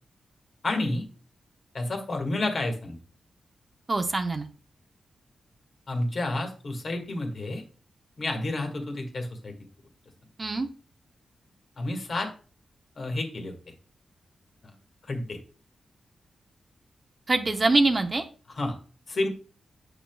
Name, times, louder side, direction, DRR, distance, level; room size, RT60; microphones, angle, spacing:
voice 1, 0.6-1.1 1.7-3.0 5.9-7.6 8.2-9.5 11.8-12.3 13.0-13.6 14.6-14.7 15.1-15.4 18.6-18.8 19.1-19.3, left 2 dB, 55° left, 4 dB, 1.7 m, -30 dB
voice 2, 3.9-4.5 10.4-10.7 17.3-18.2, right 2 dB, 30° right, 7 dB, 0.7 m, -24 dB
7.9 x 6.0 x 2.3 m, 0.38 s
cardioid pair, 90°, 0 cm